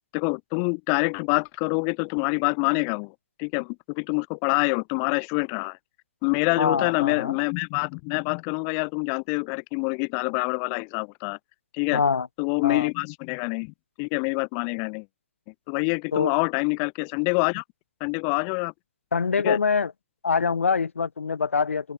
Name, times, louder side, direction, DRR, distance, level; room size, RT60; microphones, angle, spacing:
voice 1, 0.1-5.8 6.2-11.4 11.7-12.0 12.4-15.1 15.7-17.6 18.0-18.7 19.4-19.6, left 40 dB or more, 30° left, 7.3 m, -26 dB
voice 2, 6.6-7.4 11.9-12.3 12.6-12.9 16.1-16.3 19.1-19.9 20.2-21.9, left 5 dB, 85° left, 7.7 m, -24 dB
open air
hypercardioid pair, 150°, 7 cm